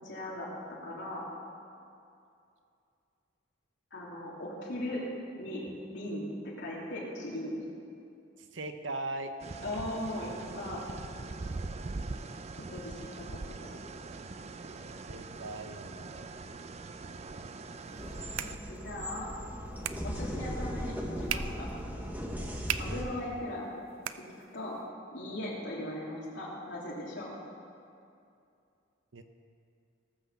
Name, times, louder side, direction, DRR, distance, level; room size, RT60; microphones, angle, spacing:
voice 1, 0.0-0.5 0.8-1.2 3.9-5.0 5.4-7.6 9.6-10.9 12.7-13.4 18.4-19.3 20.0-20.9 21.2-21.7 22.8-23.7 24.1-24.2 24.5-24.7 25.1-27.3, left 1 dB, 60° left, -5 dB, 3.1 m, -38 dB
voice 2, 8.4-9.3 15.1-16.1 29.1-29.2, right 2 dB, 70° right, 7 dB, 0.9 m, -39 dB
sound 1, 9.4-18.6, right 3 dB, 35° right, 0.5 m, -42 dB
sound 2, 17.8-24.9, right 10 dB, 90° right, 0.5 m, -42 dB
sound 3, 18.0-23.0, equal, 10° right, 1.1 m, -37 dB
18.5 x 6.2 x 7.1 m, 2.6 s
head